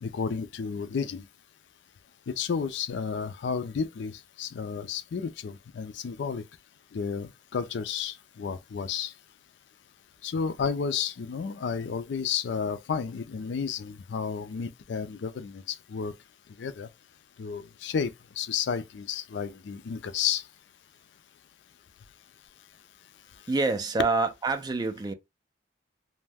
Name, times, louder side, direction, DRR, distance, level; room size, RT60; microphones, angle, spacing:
voice 1, 0.0-1.2 2.3-4.1 4.4-6.4 6.9-9.1 10.2-15.6 15.9-16.1 16.6-16.9 17.4-18.1 18.4-20.4, left 6 dB, 60° left, 0.4 m, -32 dB
voice 2, 23.5-25.1, right 3 dB, 20° right, 0.3 m, -26 dB
2.6 x 2.1 x 3.4 m
head